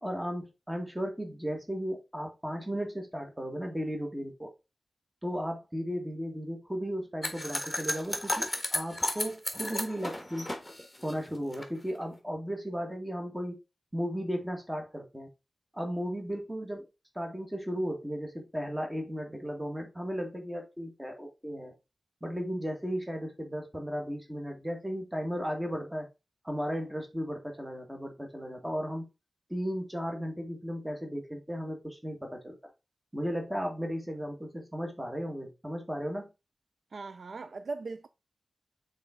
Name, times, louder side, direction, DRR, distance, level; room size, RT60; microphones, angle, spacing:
voice 1, 0.0-4.5 5.2-10.5 11.0-13.6 13.9-15.3 15.7-16.9 17.1-21.7 22.2-26.1 26.4-29.1 29.5-32.5 33.1-36.3, equal, 10° right, 1.5 m, -35 dB
sound 1, 7.2-11.6, left 1 dB, 10° left, 1.4 m, -33 dB
voice 2, 36.9-38.1, right 3 dB, 70° right, 0.4 m, -39 dB
6.8 x 4.0 x 3.6 m
wide cardioid pair, 105°, 0 cm